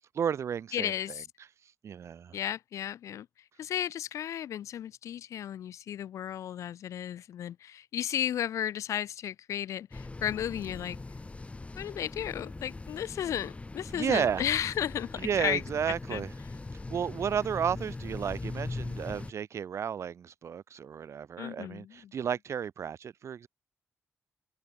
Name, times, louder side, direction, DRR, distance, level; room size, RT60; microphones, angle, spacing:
voice 1, 0.1-1.2 1.8-2.4 13.9-14.4 15.2-16.3 16.9-23.5, right 8 dB, 65° right, 0.6 m, -32 dB
voice 2, 0.7-1.3 2.3-3.3 3.6-11.0 11.8-15.6 16.1-16.2 21.4-22.1, left 10 dB, 90° left, 0.4 m, -34 dB
sound 1, 9.9-19.3, left 3 dB, 25° left, 1.6 m, -41 dB
cardioid pair, 85°, 5 cm